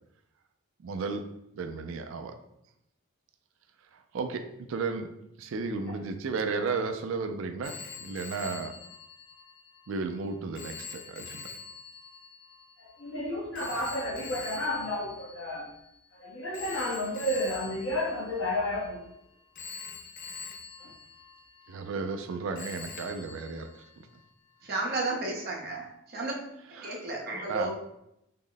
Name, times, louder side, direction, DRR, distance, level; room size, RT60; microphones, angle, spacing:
voice 1, 0.8-1.2 1.6-2.3 4.1-4.4 4.7-5.1 5.4-8.7 9.9-11.5 21.7-23.8 26.8-27.0 27.5-27.7, right 4 dB, 65° right, 0.3 m, -33 dB
Telephone, 7.6-16.0 16.5-19.1 19.5-22.3 22.5-24.3, left 6 dB, 40° left, 0.3 m, -45 dB
voice 2, 12.8-15.7 16.1-19.0 20.8-20.9, left 1 dB, 60° left, 0.9 m, -32 dB
voice 3, 24.6-26.3 26.7-27.7, right 2 dB, 45° right, 0.7 m, -33 dB
3.6 x 2.1 x 3.8 m
head